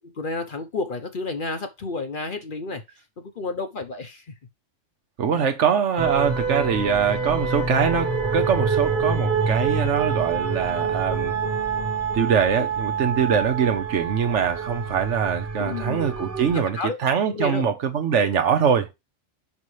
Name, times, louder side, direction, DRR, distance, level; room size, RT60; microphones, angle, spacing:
voice 1, 0.2-2.8 3.4-4.2 15.6-16.0 16.7-17.0 17.3-17.7, left 3 dB, 45° left, 0.9 m, -30 dB
voice 2, 5.2-11.3 12.1-18.9, right 7 dB, 70° right, 1.2 m, -23 dB
sound 1, 6.0-16.6, right 5 dB, 10° right, 1.2 m, -26 dB
5.5 x 5.5 x 3.2 m
omnidirectional pair, 1.3 m